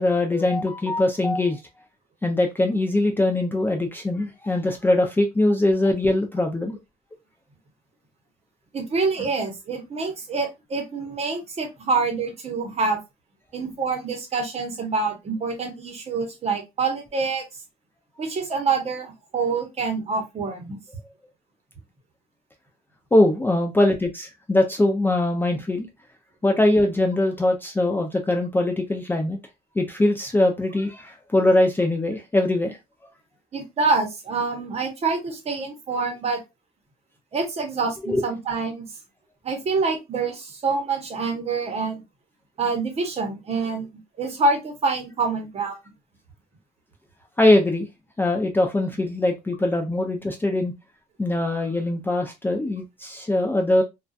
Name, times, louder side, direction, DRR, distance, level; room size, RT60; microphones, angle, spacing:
voice 1, 0.0-1.6 2.2-6.8 23.1-25.9 26.4-29.4 29.8-32.8 38.1-38.2 47.4-47.9 48.2-50.7 51.2-53.8, left 1 dB, 10° left, 0.4 m, -22 dB
voice 2, 8.7-13.0 13.5-17.4 18.2-20.8 33.5-36.4 37.3-38.9 39.4-42.0 42.6-43.9 44.2-45.8, right 4 dB, 40° right, 0.8 m, -26 dB
2.4 x 2.2 x 2.3 m
cardioid pair, 110°, 17 cm